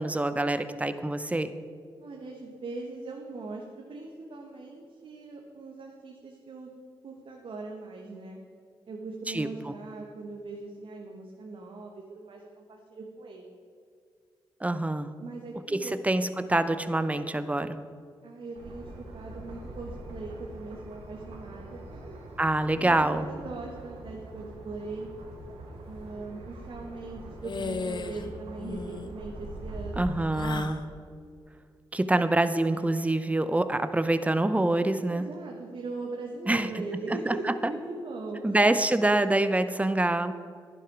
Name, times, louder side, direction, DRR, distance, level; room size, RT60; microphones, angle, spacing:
voice 1, 0.0-1.5 9.3-9.7 14.6-15.1 15.7-17.8 22.4-23.3 30.0-30.8 31.9-35.3 36.5-36.7 37.3-37.7 38.4-40.3, right 2 dB, 15° right, 11 dB, 0.8 m, -26 dB
voice 2, 2.0-6.7 7.0-8.4 8.9-13.5 15.2-15.9 18.2-22.1 22.8-25.1 25.9-30.2 30.5-31.0 35.1-38.8, right 3 dB, 65° right, 0 dB, 1.3 m, -40 dB
sound 1, 18.5-30.3, right 1 dB, 90° right, 1.6 m, -43 dB
sound 2, 27.4-28.3 28.6-29.1 30.3-30.8, left 4 dB, 50° left, 0.8 m, -35 dB
11.0 x 10.0 x 4.7 m, 2.2 s
supercardioid pair, 50°, 10 cm